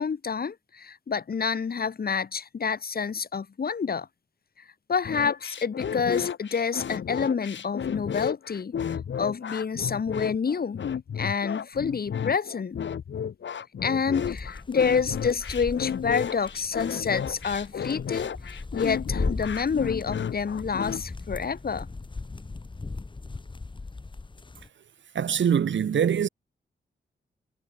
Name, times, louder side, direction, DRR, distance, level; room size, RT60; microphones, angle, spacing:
voice 1, 0.0-4.1 4.9-8.8 9.2-10.8 11.2-12.8 13.8-18.3 18.7-21.9, left 6 dB, 55° left, 7.4 m, -28 dB
sound 1, 5.0-21.0, left 8 dB, 85° left, 4.0 m, -32 dB
sound 2, 14.2-24.7, left 3 dB, 25° left, 2.7 m, -38 dB
voice 2, 25.1-26.3, right 8 dB, 90° right, 3.0 m, -23 dB
wide cardioid pair, 145°, 19 cm